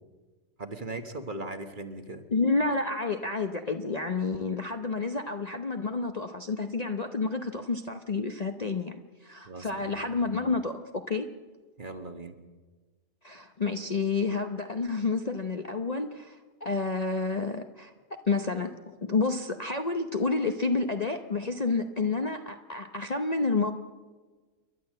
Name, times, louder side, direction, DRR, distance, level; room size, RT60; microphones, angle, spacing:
voice 1, 0.6-2.2 9.4-10.4 11.8-12.4, right 2 dB, 35° right, 7 dB, 1.5 m, -39 dB
voice 2, 2.3-11.3 13.2-23.7, left 3 dB, 35° left, 6 dB, 0.8 m, -30 dB
28.5 x 12.0 x 7.6 m, 1.3 s
omnidirectional pair, 1.4 m